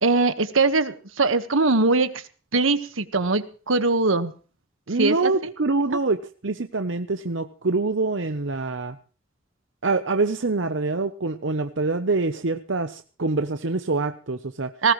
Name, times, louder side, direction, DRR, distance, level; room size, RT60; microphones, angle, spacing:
voice 1, 0.0-2.1 2.5-4.3 5.0-5.5 14.8-14.9, right 3 dB, 80° right, 10 dB, 1.5 m, -21 dB
voice 2, 4.9-9.0 9.8-14.7, right 3 dB, 65° right, 8 dB, 0.9 m, -25 dB
20.0 x 19.0 x 3.2 m, 0.38 s
head